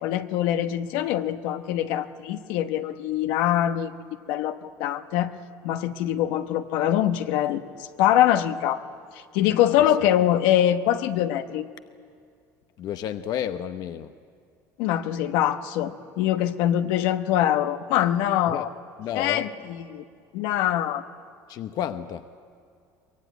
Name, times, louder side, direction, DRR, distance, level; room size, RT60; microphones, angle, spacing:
voice 1, 0.0-3.9 4.3-5.3 5.6-8.8 9.1-11.7 14.8-18.7 19.2-20.0 20.3-21.1, left 11 dB, 80° left, 8 dB, 1.1 m, -24 dB
voice 2, 12.8-14.1 18.5-18.7 19.0-19.5 21.5-22.2, left 10 dB, 60° left, 9 dB, 0.9 m, -31 dB
23.5 x 21.5 x 9.4 m, 2.3 s
supercardioid pair, 105°, 8 cm